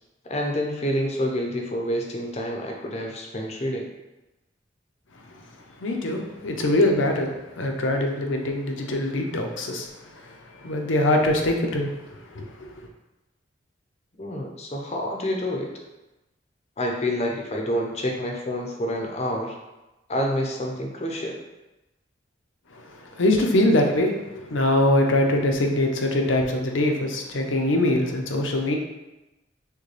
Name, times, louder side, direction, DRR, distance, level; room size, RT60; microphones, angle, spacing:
voice 1, 0.3-3.9 14.2-15.7 16.8-19.6 20.1-21.4, equal, 35° left, 1 dB, 0.6 m, -28 dB
voice 2, 5.8-12.7 22.7-28.8, left 1 dB, 75° left, 3 dB, 0.6 m, -23 dB
6.4 x 2.2 x 3.2 m, 1.0 s
head